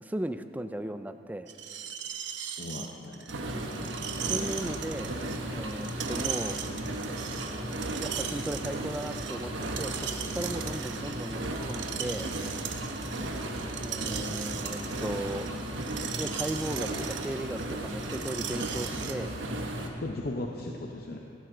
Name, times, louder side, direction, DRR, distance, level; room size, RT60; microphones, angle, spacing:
voice 1, 0.0-1.5 4.3-5.1 5.5-6.6 8.0-12.3 13.8-15.5 16.2-19.3, right 1 dB, 10° right, 10 dB, 0.3 m, -36 dB
Screech, 1.5-19.1, right 9 dB, 70° right, 0.8 m, -39 dB
voice 2, 2.6-3.3 20.0-21.2, left 2 dB, 50° left, 1 dB, 0.7 m, -36 dB
sound 1, 3.3-19.9, right 1 dB, 90° right, 1.2 m, -35 dB
17.5 x 12.0 x 3.9 m, 2.8 s
head